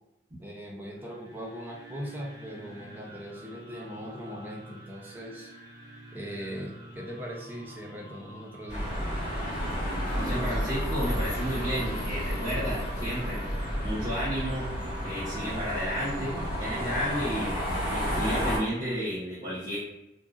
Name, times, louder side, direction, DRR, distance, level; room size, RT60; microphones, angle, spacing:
voice 1, 0.4-5.5 6.1-9.0, equal, 10° right, -2 dB, 0.4 m, -40 dB
sound 1, 0.8-15.1, right 1 dB, 75° right, 0.7 m, -48 dB
sound 2, 8.7-18.6, equal, 25° left, 1.4 m, -31 dB
voice 2, 10.1-13.4 13.8-14.7 15.0-17.6 17.9-19.8, equal, 35° right, -13 dB, 1.0 m, -32 dB
2.8 x 2.5 x 2.4 m, 0.92 s
head